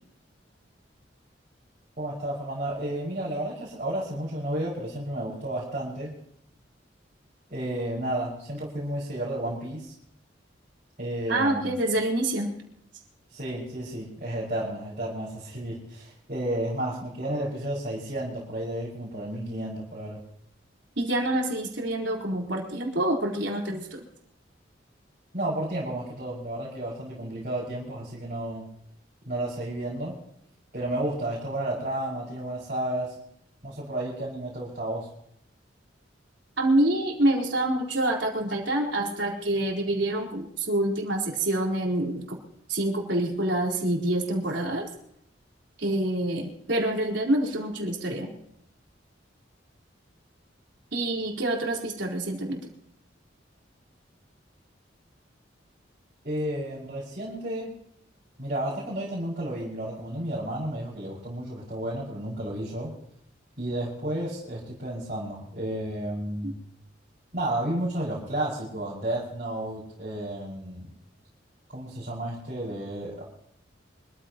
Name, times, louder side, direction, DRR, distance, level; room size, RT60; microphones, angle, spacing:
voice 1, 2.0-6.1 7.5-9.9 11.0-11.7 13.3-20.2 25.3-28.7 29.3-30.1 30.7-33.2 33.6-35.1 56.2-57.7 58.4-62.9 63.6-66.5 67.3-70.9 71.7-73.2, right 1 dB, 45° right, -7 dB, 5.8 m, -32 dB
voice 2, 11.3-12.5 21.0-24.0 36.6-42.4 42.7-44.9 45.8-48.3 50.9-52.6 66.4-66.5, right 1 dB, 70° right, 0 dB, 4.1 m, -26 dB
25.5 x 15.0 x 3.0 m, 0.72 s
head